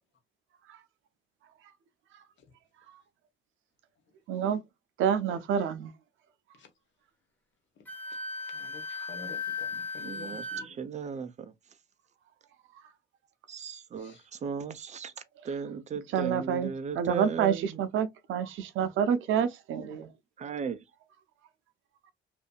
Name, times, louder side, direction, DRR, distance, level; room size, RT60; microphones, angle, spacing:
voice 1, 4.3-4.6 5.0-5.9 16.1-16.7 17.0-20.1, right 8 dB, 80° right, 0.6 m, -28 dB
Wind instrument woodwind instrument, 7.9-10.7, left 3 dB, 10° left, 0.9 m, -36 dB
voice 2, 8.5-10.7 14.0-14.1, left 4 dB, 70° left, 1.0 m, -48 dB
voice 3, 10.0-11.5 13.5-15.1 15.4-17.8 20.4-20.9, right 6 dB, 35° right, 0.5 m, -36 dB
2.6 x 2.5 x 2.2 m
cardioid pair, 90°, 20 cm